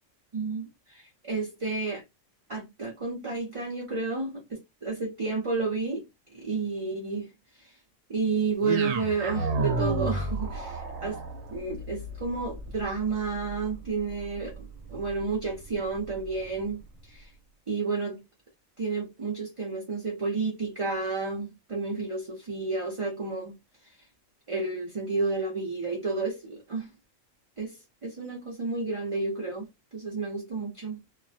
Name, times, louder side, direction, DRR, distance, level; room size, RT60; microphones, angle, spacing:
voice 1, 0.3-2.0 2.5-6.1 6.3-7.3 7.6-7.8 8.1-11.2 11.5-17.3 17.7-18.2 18.8-23.6 23.8-23.9 24.5-26.9 27.6-31.0, right 4 dB, 40° right, 0.5 m, -31 dB
sound 1, 8.6-16.8, right 3 dB, 75° right, 0.9 m, -34 dB
2.3 x 2.1 x 2.6 m
omnidirectional pair, 1.4 m